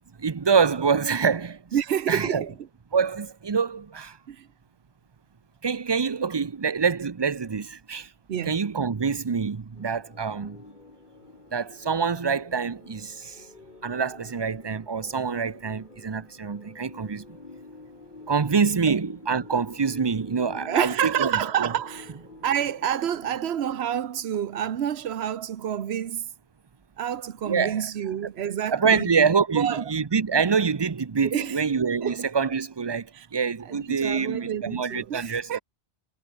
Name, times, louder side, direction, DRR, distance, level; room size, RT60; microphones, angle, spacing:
voice 1, 0.2-1.6 2.1-2.4 2.9-4.2 5.6-8.1 8.5-10.6 11.5-13.5 13.8-17.2 18.3-21.7 27.4-27.9 28.7-35.6, right 5 dB, 30° right, 0.6 m, -25 dB
voice 2, 1.7-2.5 4.3-4.5 8.3-8.7 20.7-22.1 22.4-26.3 27.0-29.1 29.5-29.8 31.2-31.6 32.0-32.2 33.1-33.3 33.6-35.6, right 9 dB, 80° right, 1.1 m, -28 dB
sound 1, 9.7-23.7, left 3 dB, 50° left, 2.5 m, -48 dB
omnidirectional pair, 1.1 m